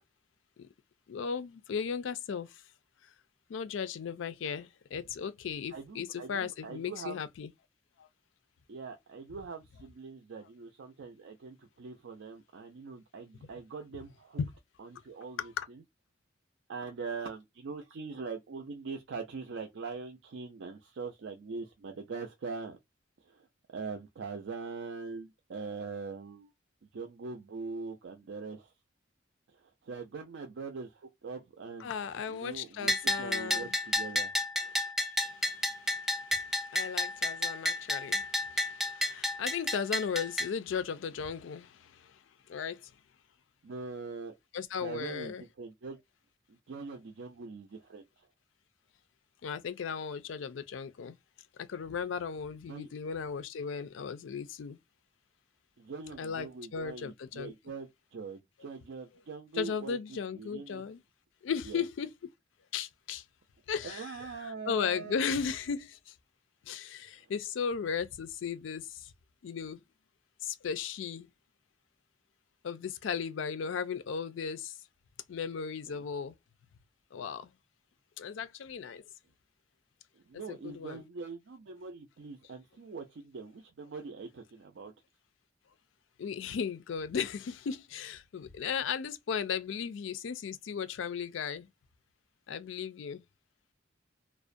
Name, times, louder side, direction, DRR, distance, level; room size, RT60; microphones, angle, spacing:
voice 1, 1.1-2.6 3.5-7.5 8.0-8.1 13.4-13.5 14.4-14.5 15.4-15.7 31.8-33.7 34.7-34.9 35.2-42.2 42.5-42.9 44.5-45.4 49.4-51.2 51.6-54.8 56.2-57.5 59.6-61.0 61.4-62.1 62.7-63.2 63.7-64.1 64.7-66.1 66.7-69.1 69.4-69.8 70.4-71.3 72.6-74.8 75.3-76.3 77.1-77.5 78.2-79.0 80.3-81.0 86.2-91.7 92.5-93.2, left 6 dB, 80° left, 0.4 m, -36 dB
voice 2, 5.7-7.2 8.7-14.4 14.8-15.8 16.7-22.8 23.2-26.5 26.9-28.7 29.5-31.9 32.3-34.3 43.6-44.3 44.8-46.0 46.5-48.3 52.7-52.9 55.8-60.8 61.6-61.8 63.8-65.3 67.2-67.3 75.9-76.0 80.3-84.9, right 4 dB, 65° right, 0.4 m, -42 dB
Bell, 32.9-40.5, left 1 dB, ahead, 0.3 m, -31 dB
2.3 x 2.1 x 2.5 m
head